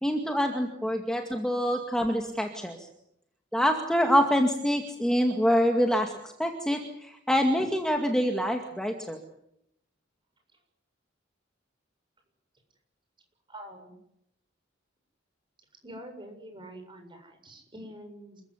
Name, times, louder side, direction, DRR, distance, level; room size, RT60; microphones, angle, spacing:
voice 1, 0.0-2.9 3.5-6.1 6.4-9.2, equal, 5° left, 3 dB, 2.1 m, -26 dB
voice 2, 13.5-13.9 15.8-18.4, right 1 dB, 25° right, 5 dB, 7.3 m, -45 dB
28.0 x 15.0 x 9.9 m, 0.77 s
head